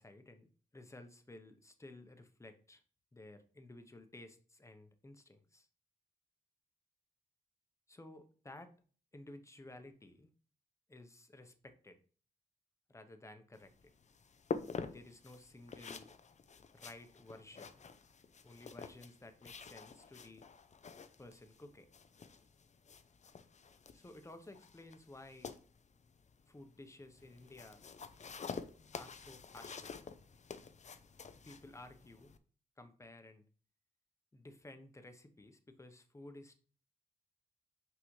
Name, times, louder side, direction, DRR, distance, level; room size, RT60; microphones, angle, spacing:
voice 1, 0.0-2.8 3.1-5.7 7.9-8.7 9.1-10.3 10.9-12.0 12.9-13.9 14.7-16.1 16.7-17.8 18.4-20.5 21.2-21.9 23.9-25.5 26.5-27.8 28.9-29.9 31.4-32.3 32.8-33.4 34.3-36.6, left 2 dB, 15° left, 8 dB, 1.0 m, -55 dB
sound 1, 13.5-32.4, left 5 dB, 45° left, 0.6 m, -48 dB
6.0 x 4.9 x 3.2 m, 0.40 s
cardioid pair, 80°, 17 cm